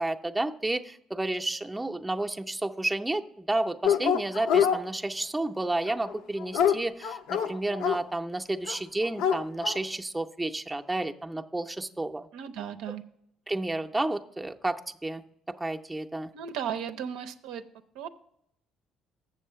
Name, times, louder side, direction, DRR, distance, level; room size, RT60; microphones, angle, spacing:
voice 1, 0.0-12.3 13.5-15.2 15.6-16.3, right 2 dB, 10° right, 4 dB, 0.5 m, -31 dB
Dog, 3.8-4.8 5.9-8.0 8.7-8.8 9.0-9.8, left 8 dB, 80° left, 0.5 m, -25 dB
voice 2, 12.3-13.0 16.3-17.6 17.9-18.1, right 8 dB, 85° right, 8 dB, 0.5 m, -35 dB
7.2 x 6.9 x 5.6 m, 0.73 s
cardioid pair, 100°, 0 cm